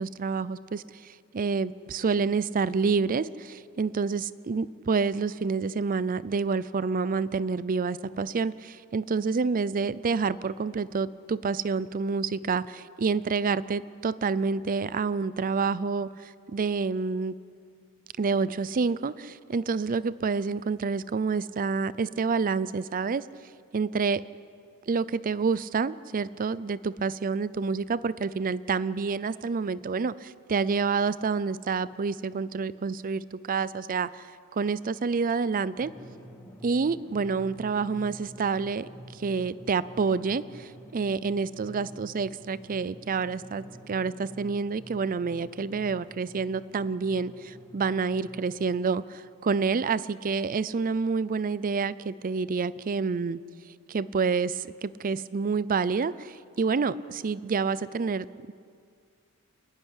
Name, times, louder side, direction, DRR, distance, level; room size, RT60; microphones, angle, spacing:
voice 1, 0.0-17.3 18.2-23.3 23.7-24.2 24.9-34.3 34.5-35.9 36.6-53.4 53.9-58.5, right 4 dB, 40° right, 17 dB, 0.4 m, -28 dB
Drum, 35.8-48.8, right 1 dB, 10° left, 2.6 m, -48 dB
28.5 x 10.5 x 10.0 m, 2.2 s
head